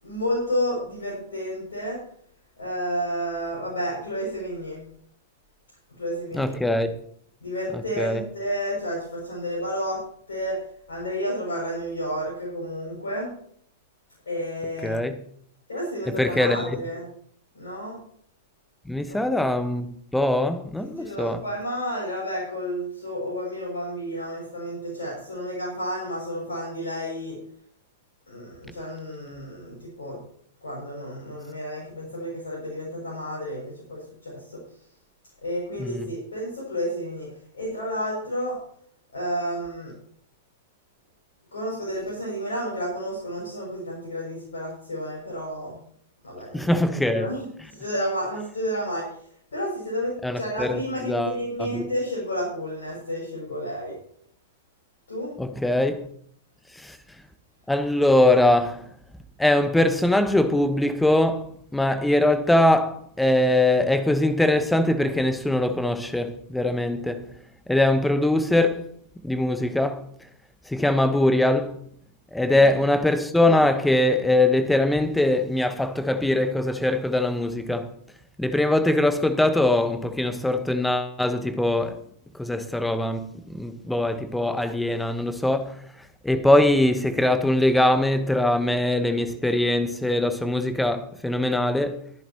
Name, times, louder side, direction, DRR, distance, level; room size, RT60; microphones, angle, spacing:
voice 1, 0.0-2.0 2.6-4.8 6.0-6.6 7.4-10.0 10.3-10.6 10.9-13.3 14.3-15.0 15.7-17.1 17.5-18.0 19.1-19.5 21.0-27.4 28.3-30.2 30.6-34.6 35.4-37.3 37.5-38.6 39.1-39.9 41.5-45.8 46.2-46.7 47.0-49.1 49.5-53.9 55.1-55.4 72.4-72.8, equal, 70° left, 6.5 m, -31 dB
voice 2, 6.3-6.9 8.0-8.3 14.8-15.2 16.1-16.8 18.9-21.4 35.8-36.1 46.5-47.3 50.2-51.9 55.4-56.1 56.8-57.0 57.7-58.9 59.4-67.3 67.7-68.9 69.2-70.1 70.7-71.8 72.3-78.0 78.4-82.0 82.3-85.8 86.2-92.0, left 1 dB, 5° left, 1.2 m, -22 dB
22.5 x 10.5 x 3.0 m
figure-of-eight pair, 100°, 0 cm